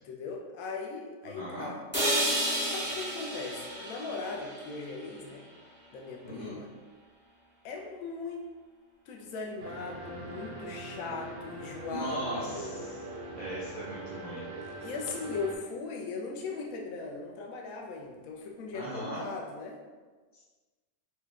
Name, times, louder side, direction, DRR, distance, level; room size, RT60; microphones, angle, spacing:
voice 1, 0.0-1.8 2.6-5.4 5.9-6.7 7.6-8.5 9.1-12.7 14.6-19.8, left 4 dB, 70° left, 1 dB, 0.9 m, -39 dB
voice 2, 1.2-1.7 6.2-6.6 11.9-13.0 13.4-14.4 18.7-19.2, right 1 dB, 55° right, -9 dB, 0.4 m, -38 dB
sound 1, 1.9-5.9, right 1 dB, 15° left, 0.4 m, -32 dB
sound 2, 9.6-15.6, right 2 dB, 85° right, 1.2 m, -42 dB
4.5 x 2.2 x 3.5 m, 1.4 s
omnidirectional pair, 1.8 m